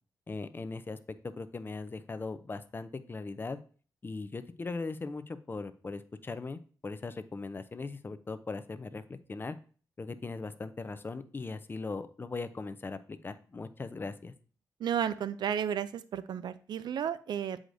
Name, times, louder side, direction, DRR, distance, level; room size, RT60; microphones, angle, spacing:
voice 1, 0.3-1.0 1.2-3.6 4.0-9.0 9.3-9.6 10.0-14.3, left 3 dB, 30° left, 12 dB, 0.5 m, -39 dB
voice 2, 14.8-17.6, right 9 dB, 85° right, 14 dB, 0.4 m, -33 dB
7.6 x 4.9 x 2.6 m, 0.40 s
cardioid pair, 95°, 7 cm